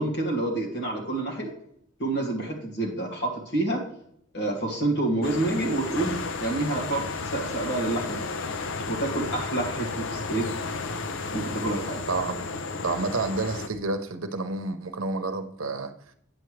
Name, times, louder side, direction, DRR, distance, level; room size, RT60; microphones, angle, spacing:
voice 1, 0.0-1.5 2.0-3.8 4.3-8.3 8.9-10.5 11.3-12.0, right 2 dB, 55° left, 2.3 m, -28 dB
sound 1, 5.2-13.7, left 4 dB, 75° left, 0.7 m, -33 dB
voice 2, 12.1-12.4 12.8-15.9, right 3 dB, 85° right, 0.9 m, -29 dB
9.3 x 7.0 x 3.2 m
head